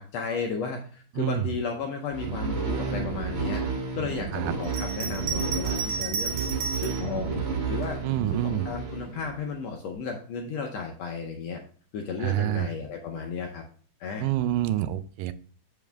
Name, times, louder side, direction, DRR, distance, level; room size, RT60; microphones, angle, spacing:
voice 1, 0.0-3.6 3.9-6.3 6.8-11.6 11.9-13.6 14.0-14.3, left 5 dB, 75° left, 2 dB, 1.6 m, -34 dB
voice 2, 1.2-1.5 4.3-4.5 8.0-8.7 12.2-12.7 14.2-15.3, right 13 dB, 90° right, 12 dB, 2.2 m, -27 dB
sound 1, 2.1-9.5, right 5 dB, 55° right, 2.5 m, -31 dB
Bell, 4.6-7.1 7.8-8.7, right 5 dB, 75° right, 2.0 m, -33 dB
7.1 x 5.4 x 3.4 m, 0.43 s
omnidirectional pair, 3.8 m